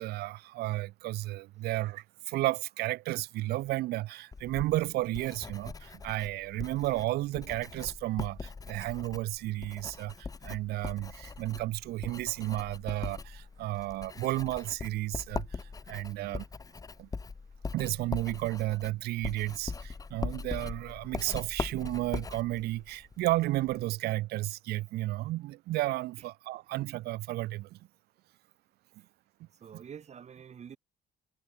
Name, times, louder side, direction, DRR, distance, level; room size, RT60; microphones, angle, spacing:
voice 1, 0.0-16.4 17.0-17.1 17.7-27.8 29.7-29.8, right 17 dB, 70° right, 0.5 m, -33 dB
Writing, 4.3-23.8, left 4 dB, 20° left, 1.1 m, -41 dB
voice 2, 29.5-30.8, right 7 dB, 40° right, 3.4 m, -47 dB
cardioid pair, 110°, 17 cm